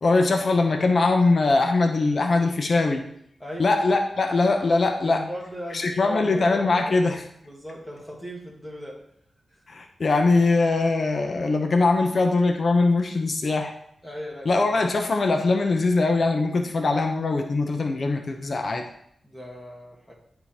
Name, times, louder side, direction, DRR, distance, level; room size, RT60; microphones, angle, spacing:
voice 1, 0.0-3.1 3.6-5.2 5.7-7.2 9.7-13.7 14.4-18.8, left 3 dB, 50° left, 4 dB, 0.9 m, -22 dB
voice 2, 3.4-3.7 5.0-6.9 7.4-9.0 9.5-9.6 14.0-14.9 19.2-20.1, equal, 10° left, -3 dB, 1.6 m, -38 dB
9.5 x 3.9 x 4.3 m, 0.69 s
wide cardioid pair, 95°, 0 cm